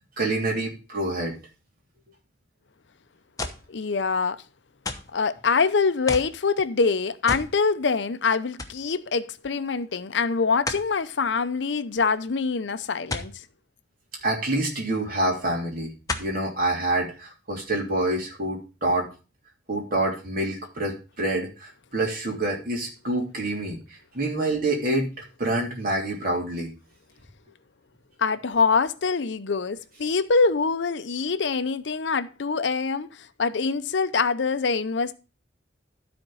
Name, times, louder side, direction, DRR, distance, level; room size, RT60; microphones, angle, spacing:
voice 1, 0.2-1.4 14.2-15.9 16.2-19.1 19.7-23.8 24.1-25.1 25.4-26.7, right 2 dB, 50° right, 3.2 m, -27 dB
sound 1, 3.4-3.7 4.8-5.2 6.1-6.4 7.3-7.5 7.9-8.0 8.6-8.8 10.7-10.9 13.1-13.3 14.8-14.9 16.1-16.4 17.1-17.2, left 3 dB, 20° left, 1.0 m, -32 dB
voice 2, 3.7-4.4 5.1-13.4 28.2-35.1, left 4 dB, 75° left, 0.6 m, -24 dB
12.5 x 4.4 x 5.6 m
head